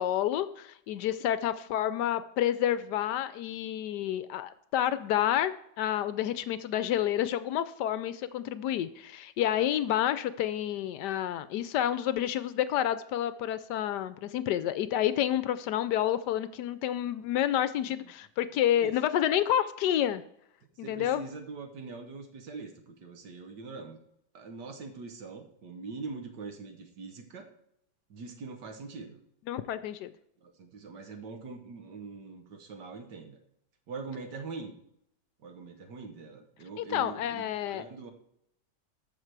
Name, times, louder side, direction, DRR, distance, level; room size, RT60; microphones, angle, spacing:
voice 1, 0.0-5.5 5.8-20.2 20.8-21.2 29.5-30.1 36.8-37.9, left 11 dB, 75° left, 13 dB, 1.1 m, -29 dB
voice 2, 20.8-24.0 24.3-27.5 28.1-29.2 30.4-33.4 33.9-34.7 35.4-38.1, right 4 dB, 70° right, 6 dB, 1.8 m, -43 dB
14.0 x 5.1 x 4.6 m, 0.76 s
omnidirectional pair, 1.9 m